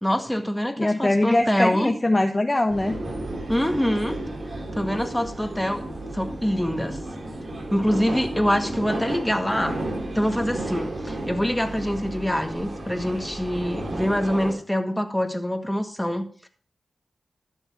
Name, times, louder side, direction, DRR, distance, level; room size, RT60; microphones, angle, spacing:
voice 1, 0.0-1.9 3.5-4.2 4.7-5.9 6.1-7.0 7.7-9.8 10.1-16.5, equal, 5° left, 6 dB, 1.8 m, -25 dB
voice 2, 0.8-3.0, left 1 dB, 25° left, 6 dB, 0.9 m, -22 dB
sound 1, 2.7-14.5, right 1 dB, 60° right, 3.1 m, -32 dB
13.5 x 5.6 x 5.9 m, 0.43 s
cardioid pair, 40°, 0 cm